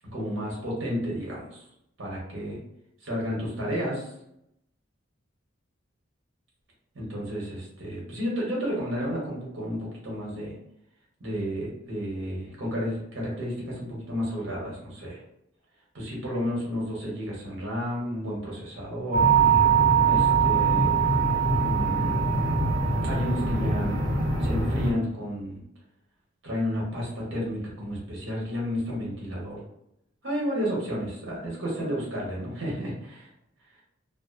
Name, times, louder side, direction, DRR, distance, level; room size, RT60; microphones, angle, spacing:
voice 1, 0.1-1.6 2.0-2.6 3.1-4.1 6.9-10.5 11.2-15.2 15.9-19.2 20.0-20.9 21.6-22.2 23.0-24.0 24.4-25.6 26.4-29.6 30.2-33.3, equal, 70° right, -4 dB, 0.9 m, -31 dB
sound 1, 19.1-24.9, right 5 dB, 40° right, 0.6 m, -22 dB
2.5 x 2.0 x 2.4 m, 0.80 s
head